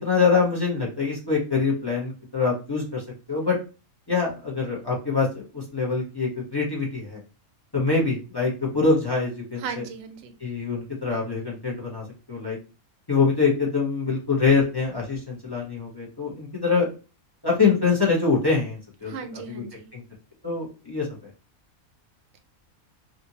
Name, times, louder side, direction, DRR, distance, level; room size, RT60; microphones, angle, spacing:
voice 1, 0.0-3.0 3.3-3.6 4.1-7.2 7.7-9.8 10.4-12.6 13.1-16.9 17.4-19.1 19.5-19.6 19.9-20.0 20.4-21.1, left 4 dB, 20° left, -3 dB, 0.6 m, -24 dB
voice 2, 9.6-10.3 19.0-19.9, right 6 dB, 65° right, 6 dB, 0.8 m, -36 dB
2.6 x 2.5 x 2.8 m, 0.32 s
omnidirectional pair, 1.5 m